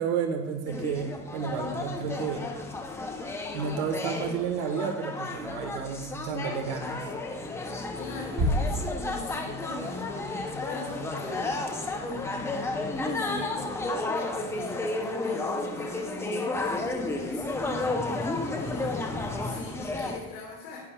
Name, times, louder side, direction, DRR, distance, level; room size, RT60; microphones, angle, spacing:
voice 1, 0.0-2.5 3.5-7.0, right 6 dB, 55° right, 4 dB, 1.3 m, -31 dB
sound 1, 0.7-20.2, left 2 dB, 5° left, 0.5 m, -32 dB
voice 2, 7.6-12.3 12.9-20.8, left 3 dB, 50° left, -5 dB, 2.3 m, -43 dB
sound 2, 8.4-9.8, equal, 20° right, 1.6 m, -29 dB
11.0 x 9.6 x 2.3 m, 1.3 s
supercardioid pair, 155°, 38 cm